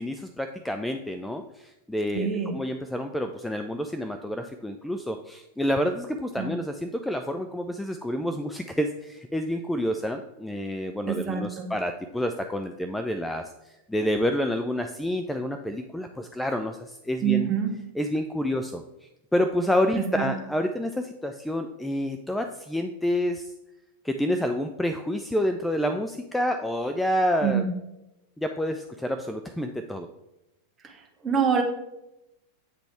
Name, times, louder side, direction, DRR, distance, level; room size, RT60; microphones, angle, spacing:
voice 1, 0.0-13.4 13.9-17.5 18.0-18.8 19.3-23.5 24.0-27.6 28.4-30.1, equal, 5° left, 6 dB, 0.3 m, -28 dB
voice 2, 2.1-2.5 6.4-6.5 11.1-11.7 17.2-17.7 19.9-20.3 27.4-27.7 30.8-31.6, right 7 dB, 20° right, 3 dB, 1.0 m, -26 dB
8.0 x 3.9 x 3.3 m, 0.92 s
figure-of-eight pair, 90°, 0 cm